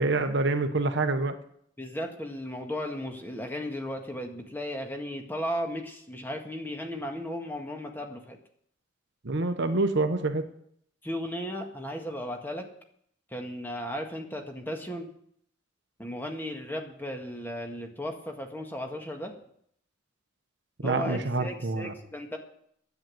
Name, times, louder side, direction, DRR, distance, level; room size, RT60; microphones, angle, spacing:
voice 1, 0.0-1.3 9.2-10.5 20.8-21.9, right 3 dB, 60° right, 8 dB, 1.1 m, -26 dB
voice 2, 1.8-8.4 11.0-12.7 13.3-15.1 16.0-19.3 20.8-22.4, equal, 10° left, 2 dB, 1.7 m, -35 dB
10.5 x 8.2 x 9.2 m, 0.68 s
head